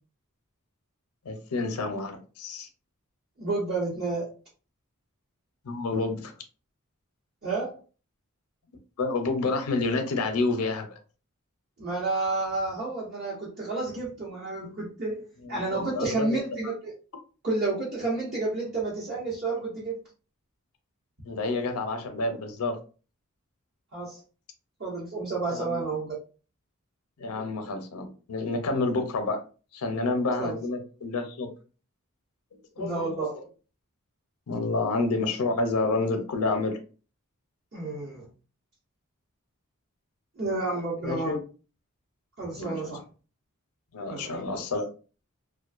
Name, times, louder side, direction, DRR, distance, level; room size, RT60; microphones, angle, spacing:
voice 1, 1.2-2.7 5.6-6.3 9.0-10.9 15.4-16.7 21.2-22.8 25.5-25.9 27.2-29.4 29.7-31.5 32.8-33.3 34.5-36.8 40.7-41.4 42.5-42.8 43.9-44.9, left 3 dB, 85° left, 6 dB, 0.5 m, -29 dB
voice 2, 3.4-4.3 7.4-7.8 11.8-16.9 17.4-20.0 23.9-24.2 24.8-26.2 30.4-30.6 32.8-33.4 37.7-38.3 40.4-41.4 42.4-43.0 44.0-44.5, right 3 dB, 50° right, -7 dB, 1.0 m, -30 dB
2.4 x 2.2 x 2.4 m, 0.36 s
head